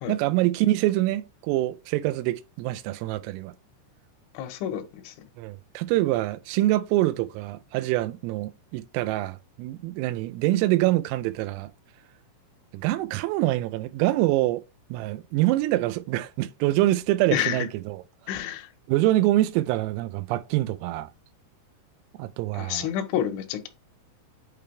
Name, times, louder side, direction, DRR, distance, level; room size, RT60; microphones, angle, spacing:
voice 1, 0.1-3.5 5.4-11.7 12.7-14.6 14.9-18.0 18.9-21.1 22.2-22.9, right 16 dB, 90° right, 3.3 m, -25 dB
voice 2, 4.3-5.1 17.3-17.7 18.3-18.7 22.5-23.7, left 10 dB, 80° left, 3.2 m, -29 dB
8.6 x 3.3 x 3.3 m
omnidirectional pair, 5.9 m